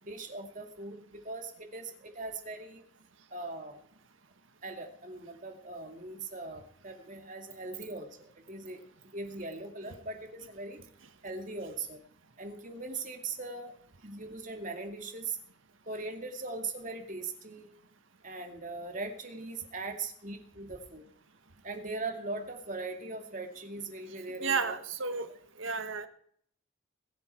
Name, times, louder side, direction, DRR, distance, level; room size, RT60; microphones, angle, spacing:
voice 1, 0.0-2.8 3.3-3.8 4.6-8.8 9.1-10.8 11.2-12.0 12.4-13.8 14.0-15.4 15.9-17.7 18.2-21.1 21.6-24.7, right 3 dB, 40° right, 4 dB, 2.4 m, -40 dB
voice 2, 24.4-25.3 25.6-26.1, right 5 dB, 70° right, 8 dB, 1.5 m, -32 dB
21.0 x 11.0 x 4.5 m, 0.62 s
head